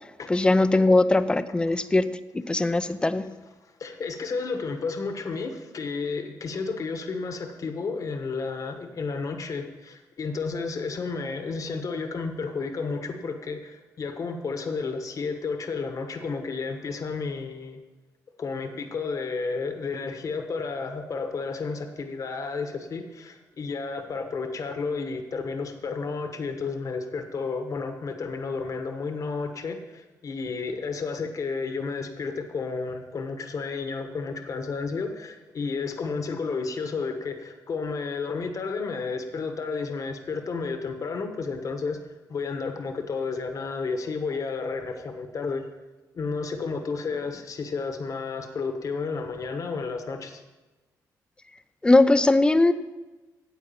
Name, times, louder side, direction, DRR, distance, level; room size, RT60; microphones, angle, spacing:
voice 1, 0.3-3.3 51.8-52.7, left 2 dB, 15° left, 12 dB, 0.5 m, -20 dB
voice 2, 2.5-2.9 3.2-3.3 3.6-17.8 18.4-42.0 42.3-45.7 46.1-50.4, left 4 dB, 55° left, 6 dB, 1.3 m, -32 dB
9.3 x 8.2 x 7.1 m, 1.2 s
cardioid pair, 95°, 7 cm